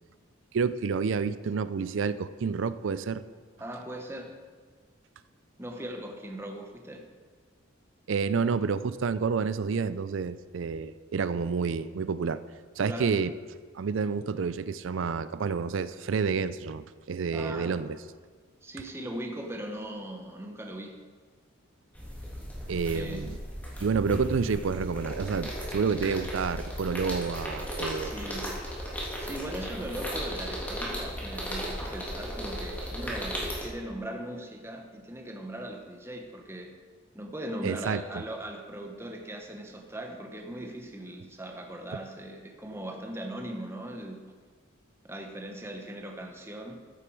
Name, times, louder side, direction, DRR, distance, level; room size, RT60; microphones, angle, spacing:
voice 1, 0.5-3.2 8.1-12.4 12.8-13.3 13.7-18.0 22.7-23.4 23.8-28.1 37.6-38.2, right 5 dB, 70° right, 14 dB, 0.4 m, -29 dB
voice 2, 3.6-4.3 5.6-7.0 12.8-13.2 17.3-17.8 18.6-21.0 22.9-23.3 28.0-28.6 29.2-36.7 37.1-44.2 45.0-46.8, right 1 dB, 10° right, 3 dB, 0.8 m, -39 dB
sound 1, 21.9-33.7, equal, 10° left, 1.9 m, -36 dB
13.5 x 6.7 x 4.7 m, 1.5 s
head